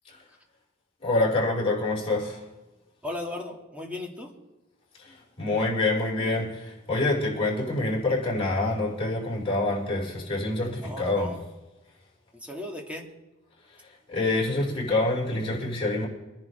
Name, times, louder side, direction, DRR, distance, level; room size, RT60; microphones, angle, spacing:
voice 1, 1.0-2.4 5.0-11.3 14.1-16.1, left 2 dB, 30° left, 5.3 m, -26 dB
voice 2, 3.0-4.3 10.8-11.4 12.3-13.1, left 2 dB, 5° right, 2.3 m, -36 dB
24.5 x 10.5 x 3.4 m
head